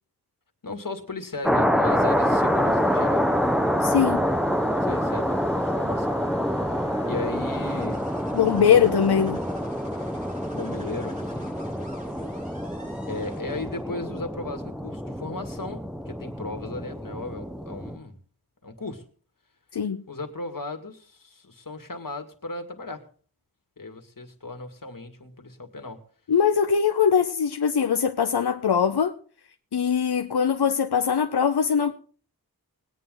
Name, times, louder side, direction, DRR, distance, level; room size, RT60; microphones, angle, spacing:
voice 1, 0.6-3.3 4.9-6.1 6.5-8.0 10.5-11.5 13.1-18.1 18.6-19.0 20.1-23.0 23.8-26.0, left 3 dB, 60° left, 2.2 m, -36 dB
sound 1, 1.4-18.0, equal, ahead, 1.0 m, -26 dB
sound 2, 1.9-7.9, left 1 dB, 15° left, 3.0 m, -44 dB
voice 2, 3.8-4.3 8.3-9.4 19.7-20.0 26.3-29.2 29.7-31.9, left 7 dB, 90° left, 0.8 m, -21 dB
sound 3, 7.4-13.9, left 1 dB, 20° right, 5.5 m, -47 dB
20.0 x 9.3 x 3.8 m
wide cardioid pair, 75°, 38 cm